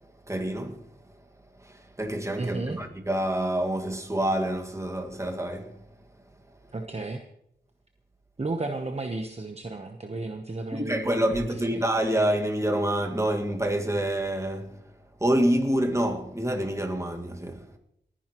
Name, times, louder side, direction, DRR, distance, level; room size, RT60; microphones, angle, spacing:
voice 1, 0.3-0.9 1.6-5.8 10.7-14.8 15.2-17.6, right 1 dB, 15° right, 1.9 m, -27 dB
voice 2, 2.4-2.8 6.7-7.2 8.4-11.8, right 2 dB, 35° right, 1.0 m, -33 dB
29.5 x 10.5 x 3.1 m
wide cardioid pair, 75°, 19 cm